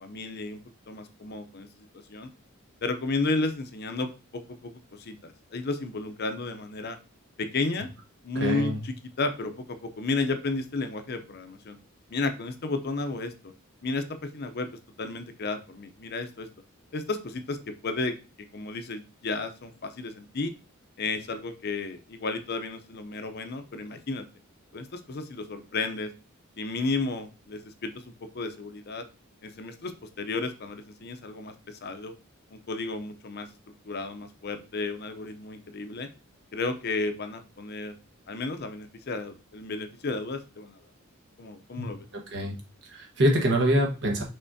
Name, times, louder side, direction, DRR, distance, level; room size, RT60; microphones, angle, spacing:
voice 1, 0.0-0.6 0.9-1.7 2.1-2.3 2.8-7.0 7.4-7.9 8.2-11.8 12.1-13.5 13.8-14.7 15.0-16.5 16.9-18.2 18.5-20.5 21.0-24.3 24.7-26.1 26.6-29.0 29.4-32.1 32.5-33.5 33.9-36.1 36.5-37.9 38.3-40.8 41.4-42.1, left 3 dB, 50° left, 8 dB, 0.6 m, -33 dB
voice 2, 8.3-8.8 41.8-41.9 42.3-42.6 42.8-44.2, equal, 60° right, 1 dB, 1.3 m, -25 dB
5.5 x 3.6 x 2.7 m, 0.30 s
head